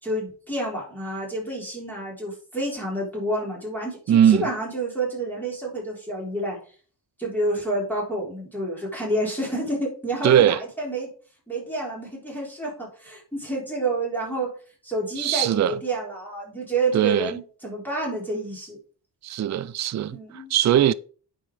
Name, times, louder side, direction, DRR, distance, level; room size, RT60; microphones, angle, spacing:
voice 1, 0.0-6.6 7.2-11.1 11.5-14.5 14.8-18.8 20.1-20.5, right 1 dB, 5° left, 3.7 m, -29 dB
voice 2, 4.1-4.5 10.2-10.6 15.2-15.8 16.9-17.3 19.2-20.9, right 10 dB, 45° right, 0.4 m, -20 dB
9.0 x 5.2 x 4.9 m
wide cardioid pair, 120°, 41 cm